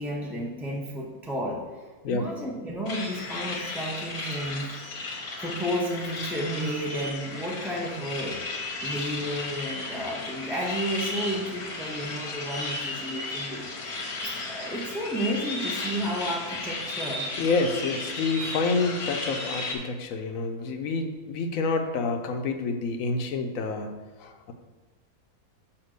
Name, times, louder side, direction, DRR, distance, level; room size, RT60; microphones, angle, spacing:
voice 1, 0.0-4.7 5.4-8.4 8.8-14.1 14.4-17.3, equal, ahead, -3 dB, 0.5 m, -32 dB
sound 1, 2.9-19.7, left 3 dB, 85° left, 1.7 m, -34 dB
voice 2, 17.4-24.5, left 3 dB, 70° left, 6 dB, 1.0 m, -28 dB
5.9 x 4.4 x 6.4 m, 1.3 s
omnidirectional pair, 1.6 m